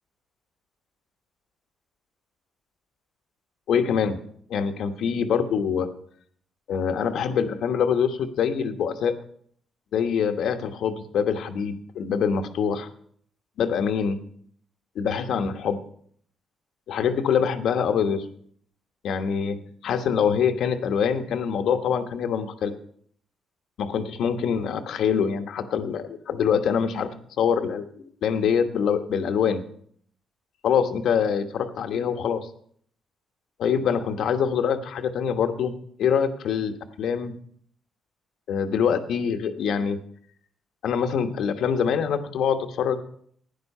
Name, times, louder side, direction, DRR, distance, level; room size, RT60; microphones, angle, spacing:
voice 1, 3.7-4.2 4.5-5.9 6.7-9.1 9.9-12.9 13.6-14.2 14.9-15.8 16.9-18.2 19.0-19.6 19.8-22.7 23.8-27.1 27.4-29.6 30.6-32.5 33.6-35.7 36.0-37.3 38.5-40.0 40.8-43.0, left 7 dB, 75° left, 7 dB, 1.2 m, -24 dB
12.0 x 9.7 x 5.5 m, 0.62 s
cardioid pair, 90°, 0 cm